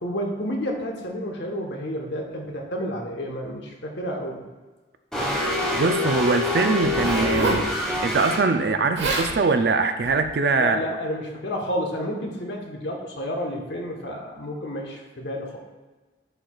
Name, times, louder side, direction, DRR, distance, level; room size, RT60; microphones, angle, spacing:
voice 1, 0.0-4.4 10.5-15.6, equal, 80° left, 1 dB, 1.2 m, -30 dB
sound 1, 5.1-8.4, left 1 dB, 5° left, 1.3 m, -25 dB
voice 2, 5.7-7.7 8.0-10.8, right 4 dB, 60° right, 8 dB, 0.4 m, -22 dB
Zipper (clothing), 6.8-7.7 8.7-8.8 9.0-9.3 10.0-10.3, right 2 dB, 85° right, 1.2 m, -26 dB
10.0 x 4.7 x 2.3 m, 1.3 s
head